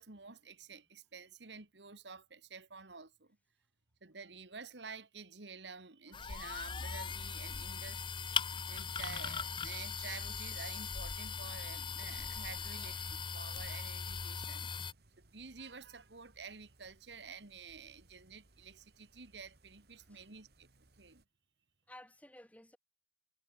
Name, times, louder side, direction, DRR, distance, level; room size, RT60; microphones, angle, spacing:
voice 1, 0.0-3.4 4.0-8.4 8.7-14.7 15.2-21.2, right 5 dB, 80° right, 2.1 m, -50 dB
sound 1, 6.1-14.9, left 6 dB, 25° left, 0.6 m, -39 dB
sound 2, 6.9-21.2, right 2 dB, 60° right, 2.3 m, -66 dB
voice 2, 12.6-13.2 20.0-20.3 21.9-22.8, left 1 dB, 10° left, 5.5 m, -57 dB
head